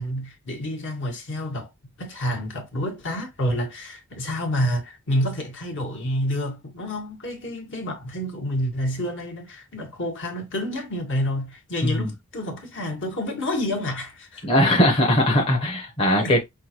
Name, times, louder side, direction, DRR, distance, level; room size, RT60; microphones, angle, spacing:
voice 1, 0.0-1.7 2.0-14.5 16.2-16.4, equal, 60° left, 1.7 m, -29 dB
voice 2, 14.4-16.4, left 1 dB, 25° left, 0.9 m, -20 dB
5.7 x 2.6 x 2.9 m
head